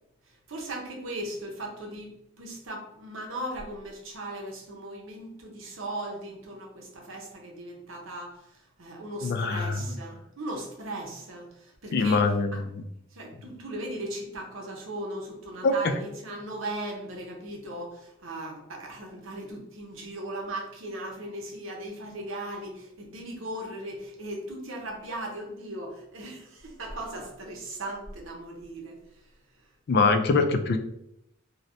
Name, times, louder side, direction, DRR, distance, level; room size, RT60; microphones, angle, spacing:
voice 1, 0.5-12.6 13.1-29.0, right 1 dB, 75° right, 1 dB, 0.8 m, -38 dB
voice 2, 9.2-9.8 11.9-12.7 15.6-15.9 29.9-30.8, left 4 dB, 55° left, 7 dB, 0.3 m, -23 dB
3.1 x 2.7 x 2.5 m, 0.81 s
head